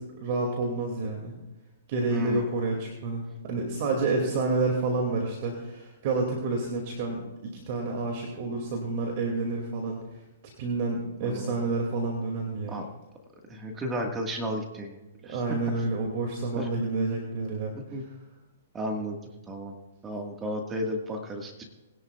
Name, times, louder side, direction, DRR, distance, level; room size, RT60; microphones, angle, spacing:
voice 1, 0.0-1.3 1.9-10.0 10.6-12.8 15.3-18.0, right 3 dB, 50° right, 1 dB, 2.4 m, -29 dB
voice 2, 2.1-2.5 11.2-11.5 12.7-12.9 13.5-15.4 16.6-16.9 17.7-18.0 18.7-19.2 19.5-19.7 20.0-21.6, equal, 15° right, 3 dB, 1.7 m, -33 dB
21.5 x 11.0 x 2.4 m, 1.1 s
hypercardioid pair, 130°, 0 cm